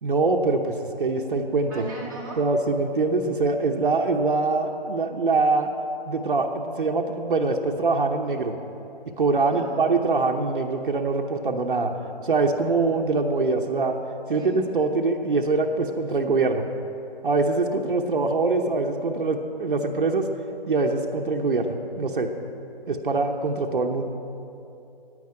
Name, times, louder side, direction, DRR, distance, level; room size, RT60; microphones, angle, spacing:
voice 1, 0.0-1.9 2.4-5.7 6.1-8.6 9.2-11.9 12.2-14.0 14.3-16.6 17.2-20.3 20.7-22.3 22.9-24.0, right 3 dB, 60° right, 3 dB, 1.0 m, -23 dB
voice 2, 1.7-2.4 9.5-9.8 14.3-14.6, right 3 dB, 20° right, -6 dB, 0.9 m, -37 dB
9.9 x 9.7 x 8.8 m, 2.8 s
hypercardioid pair, 175°, 30 cm